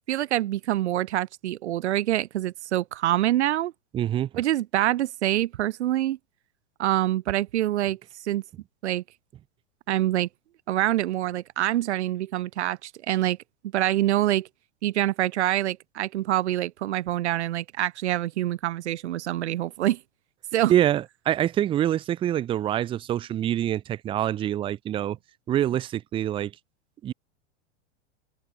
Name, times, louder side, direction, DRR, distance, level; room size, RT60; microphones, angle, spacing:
voice 1, 0.1-3.7 4.3-6.2 6.8-8.0 8.2-8.4 8.8-9.0 9.9-10.3 10.7-13.4 13.7-14.5 14.8-20.0 20.5-20.7, right 13 dB, 70° right, 1.2 m, -25 dB
voice 2, 3.9-4.3 20.7-25.2 25.5-26.5 27.0-27.1, right 11 dB, 15° right, 1.2 m, -25 dB
supercardioid pair, 175°, 35 cm